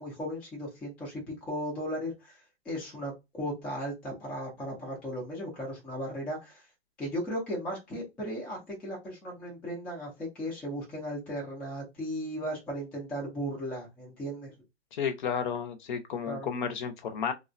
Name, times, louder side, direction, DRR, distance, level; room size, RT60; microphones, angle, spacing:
voice 1, 0.0-2.4 2.7-6.6 7.0-14.5 16.3-16.5, equal, 5° left, 0.4 m, -36 dB
voice 2, 14.9-17.3, left 7 dB, 45° left, 0.6 m, -32 dB
3.5 x 2.1 x 2.4 m
hypercardioid pair, 145°, 35 cm